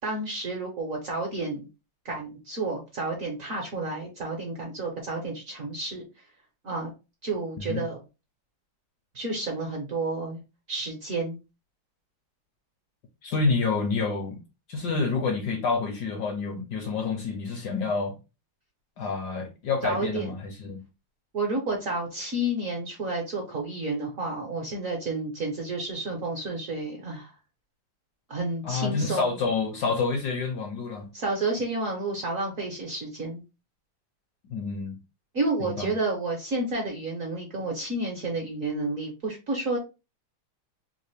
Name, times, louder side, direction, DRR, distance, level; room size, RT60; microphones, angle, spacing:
voice 1, 0.0-1.7 2.0-6.0 6.6-6.9 7.2-8.0 9.1-10.4 10.7-11.4 19.8-20.4 21.3-27.3 28.3-29.4 31.1-33.4 35.3-39.8, right 2 dB, 60° right, 0.9 m, -30 dB
voice 2, 13.2-14.4 14.7-18.1 19.0-20.8 28.6-31.1 34.5-35.0 35.6-36.0, left 4 dB, 70° left, 1.0 m, -28 dB
3.3 x 2.5 x 3.1 m
omnidirectional pair, 2.2 m